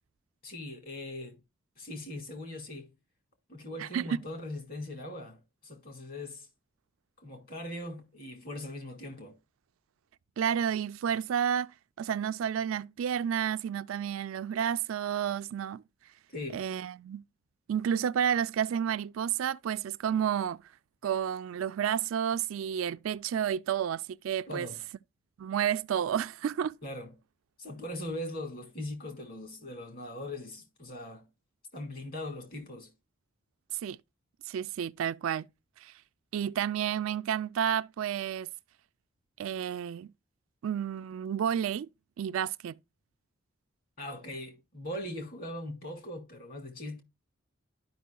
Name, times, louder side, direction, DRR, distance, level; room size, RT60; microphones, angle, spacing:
voice 1, 0.4-1.4 1.8-2.9 3.5-6.5 7.2-9.4 16.3-16.6 24.5-24.8 26.8-27.1 27.6-31.3 31.7-32.9 44.0-47.0, left 1 dB, 45° left, 2.0 m, -40 dB
voice 2, 3.8-4.2 10.4-11.7 12.0-15.8 16.5-17.2 17.7-20.6 21.0-24.7 25.4-26.8 33.8-34.0 34.5-35.5 35.8-35.9 36.3-38.5 39.4-40.1 40.6-41.9 42.2-42.8, right 8 dB, 75° right, 0.3 m, -31 dB
12.0 x 5.4 x 2.2 m
head